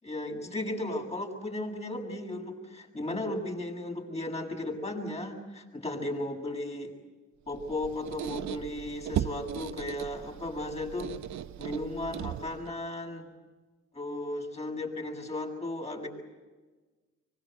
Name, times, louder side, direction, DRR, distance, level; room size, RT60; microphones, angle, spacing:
voice 1, 0.0-6.9 7.5-11.1 11.6-13.3 13.9-16.1, left 1 dB, 20° left, 1 dB, 7.7 m, -35 dB
Squeak, 7.5-12.7, right 11 dB, 70° right, 1.1 m, -37 dB
25.5 x 25.5 x 8.1 m, 1.3 s
cardioid pair, 90°, 30 cm